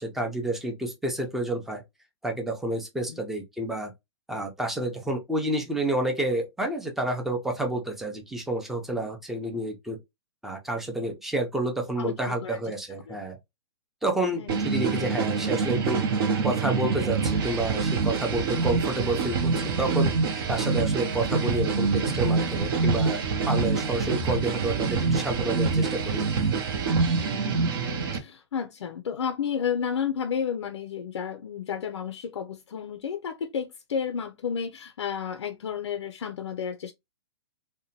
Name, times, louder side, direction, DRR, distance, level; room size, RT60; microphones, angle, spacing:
voice 1, 0.0-1.8 2.2-3.9 4.3-10.0 10.4-13.4 14.0-16.0 16.4-20.1 20.5-23.2 23.5-26.2, right 1 dB, ahead, 0.5 m, -29 dB
voice 2, 12.0-12.6 13.1-13.2 14.3-14.5 15.0-15.1 27.2-27.7 28.1-36.9, left 7 dB, 90° left, 0.4 m, -32 dB
sound 1, 14.5-28.2, right 4 dB, 55° right, 0.7 m, -26 dB
2.6 x 2.1 x 2.7 m
hypercardioid pair, 140°, 14 cm